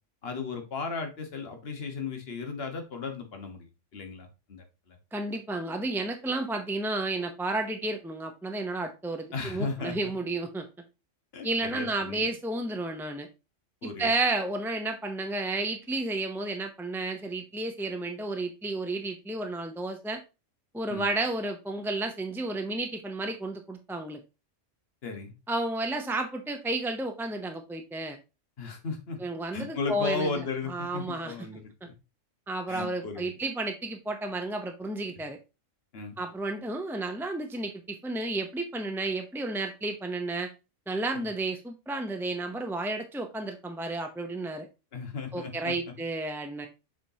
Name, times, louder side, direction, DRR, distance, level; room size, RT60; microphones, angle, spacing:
voice 1, 0.2-5.0 9.3-10.1 11.3-12.3 13.8-14.1 20.9-21.0 25.0-25.3 28.6-29.2 29.5-31.9 32.7-33.3 35.9-36.2 41.1-41.3 44.9-45.9, left 4 dB, 55° left, 5 dB, 1.5 m, -35 dB
voice 2, 5.1-10.7 11.4-13.3 13.8-20.2 20.7-24.2 25.5-28.2 29.2-31.3 32.5-35.4 36.2-40.5 40.9-44.7 45.3-46.7, right 2 dB, 5° right, 4 dB, 0.3 m, -32 dB
7.2 x 5.1 x 2.8 m, 0.28 s
omnidirectional pair, 1.3 m